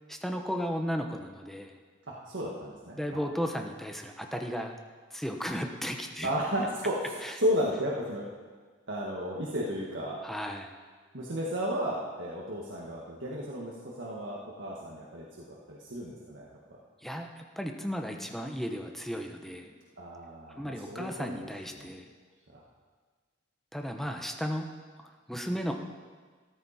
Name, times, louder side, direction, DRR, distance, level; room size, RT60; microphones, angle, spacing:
voice 1, 0.1-1.8 3.0-4.7 5.1-6.3 7.2-7.3 10.2-10.8 17.0-19.8 20.6-22.1 23.7-24.7 25.3-25.7, equal, ahead, 3 dB, 1.0 m, -35 dB
voice 2, 2.1-3.2 6.2-8.3 8.9-10.2 11.1-16.8 20.0-21.5 21.7-21.9, equal, 80° right, -4 dB, 1.7 m, -34 dB
14.0 x 13.0 x 4.3 m, 1.5 s
head